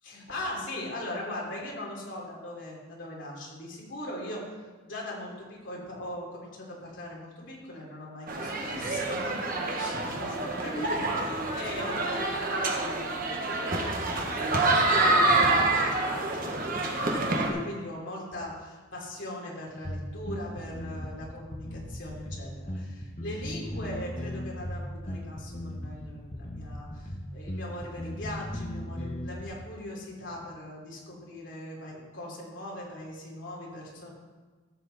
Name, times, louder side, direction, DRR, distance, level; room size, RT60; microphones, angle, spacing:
voice 1, 0.0-4.5 4.8-34.1, left 1 dB, 65° left, -3 dB, 3.2 m, -40 dB
sound 1, 8.3-17.5, right 2 dB, 45° right, 1.3 m, -27 dB
sound 2, 19.8-29.4, left 1 dB, 30° left, 0.9 m, -37 dB
14.0 x 7.7 x 4.1 m, 1.4 s
head